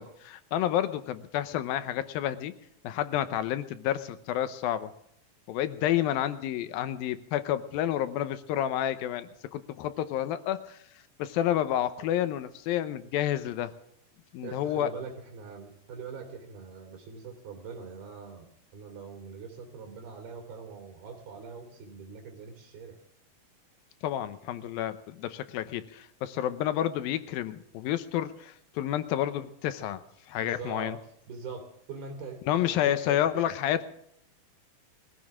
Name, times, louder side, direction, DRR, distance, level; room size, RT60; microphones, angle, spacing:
voice 1, 0.0-2.5 2.8-4.9 5.5-10.8 11.2-13.7 14.3-14.9 24.0-31.0 32.5-33.8, left 12 dB, 80° left, 12 dB, 2.6 m, -30 dB
voice 2, 14.4-23.0 30.4-30.9 31.3-31.6 31.9-33.2, right 5 dB, 85° right, 4 dB, 5.0 m, -42 dB
21.5 x 15.0 x 3.6 m, 0.72 s
omnidirectional pair, 4.2 m